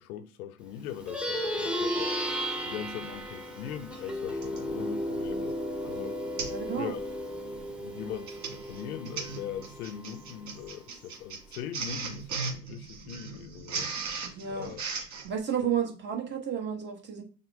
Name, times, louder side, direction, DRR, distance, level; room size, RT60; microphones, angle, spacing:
voice 1, 0.0-2.1 2.6-5.6 5.8-6.2 6.8-7.0 7.7-13.9 14.5-14.8, left 10 dB, 65° left, 0.7 m, -40 dB
Plucked string instrument, 0.9-10.7, equal, ahead, 1.0 m, -34 dB
Printer, 3.2-3.3 4.4-4.7 5.3-5.5 5.8-5.9 6.4-6.7 7.0-7.3 8.0-15.3, right 4 dB, 50° right, 2.0 m, -37 dB
voice 2, 6.5-7.0 14.2-14.7 15.2-17.2, right 8 dB, 20° right, 1.2 m, -32 dB
6.2 x 2.1 x 3.5 m
hypercardioid pair, 85°, 48 cm